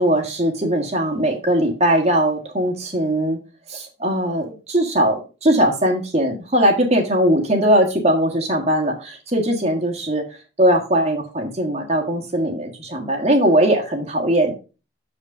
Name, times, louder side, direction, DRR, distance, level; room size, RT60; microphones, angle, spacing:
voice 1, 0.0-3.4 3.7-14.5, right 1 dB, 35° right, 1 dB, 1.4 m, -20 dB
7.0 x 5.0 x 5.3 m, 0.32 s
head